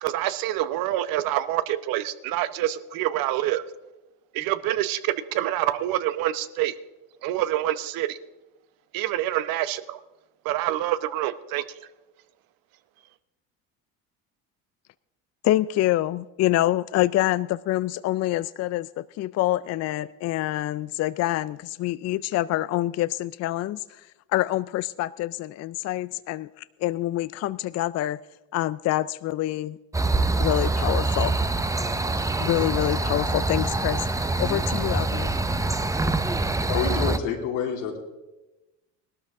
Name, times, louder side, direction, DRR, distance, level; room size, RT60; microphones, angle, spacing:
voice 1, 0.0-3.6 4.3-6.7 7.2-8.2 8.9-10.0 10.4-11.6, right 14 dB, 65° right, 14 dB, 0.9 m, -26 dB
voice 2, 15.4-23.8 24.3-26.5 26.8-28.2 28.5-29.8 30.4-31.4 32.4-34.1 34.4-35.3, left 15 dB, 45° left, 16 dB, 0.4 m, -26 dB
sound 1, 29.9-37.2, right 2 dB, 10° right, 0.7 m, -25 dB
voice 3, 36.7-38.0, left 7 dB, 90° left, 0 dB, 2.8 m, -27 dB
18.5 x 12.5 x 3.6 m, 1.0 s
supercardioid pair, 80°, 37 cm